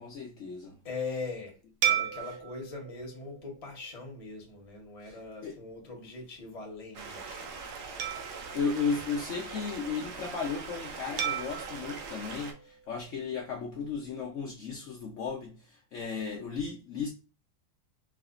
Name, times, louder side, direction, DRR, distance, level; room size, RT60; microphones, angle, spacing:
voice 1, 0.0-0.8 2.2-2.3 5.0-5.2 5.4-5.6 8.3-17.1, left 5 dB, 80° left, 0.6 m, -35 dB
voice 2, 0.8-1.6 1.8-7.5, left 3 dB, 35° left, 0.6 m, -41 dB
sound 1, 1.8-4.5 5.1-5.3 8.0-9.8 11.2-13.5, right 10 dB, 85° right, 1.3 m, -36 dB
Stream, 6.9-12.5, right 4 dB, 70° right, 1.2 m, -42 dB
4.7 x 2.1 x 2.4 m
omnidirectional pair, 2.0 m